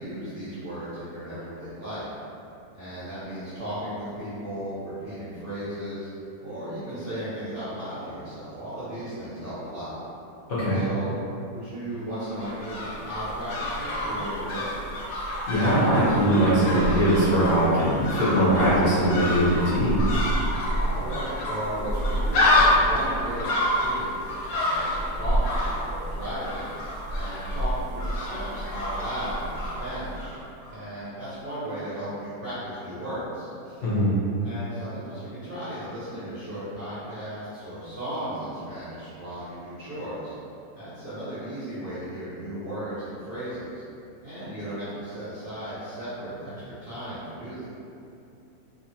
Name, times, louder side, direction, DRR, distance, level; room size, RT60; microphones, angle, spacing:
voice 1, 0.0-2.1 2.7-6.1 6.4-9.9 10.7-11.2 11.5-14.7 20.7-26.7 27.1-30.3 30.7-33.8 34.4-40.3 40.7-43.8 44.2-47.7, right 1 dB, 50° right, -13 dB, 0.6 m, -35 dB
voice 2, 10.5-10.8 15.5-20.0 33.8-34.2, equal, 55° left, -11 dB, 0.9 m, -21 dB
sound 1, 12.2-30.4 30.6-30.7, left 1 dB, 80° left, 1.2 m, -27 dB
2.9 x 2.5 x 2.7 m, 2.7 s
omnidirectional pair, 1.8 m